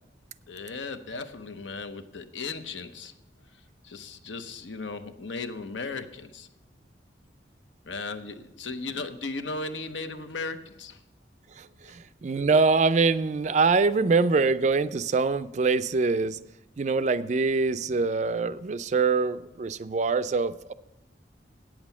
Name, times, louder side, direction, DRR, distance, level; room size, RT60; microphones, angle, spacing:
voice 1, 0.5-3.1 3.8-6.5 7.8-11.0 11.9-12.0, left 3 dB, 85° left, 9 dB, 0.8 m, -36 dB
voice 2, 11.6-16.4 16.8-20.7, right 4 dB, 40° right, 14 dB, 0.4 m, -24 dB
8.9 x 7.5 x 7.1 m, 0.93 s
head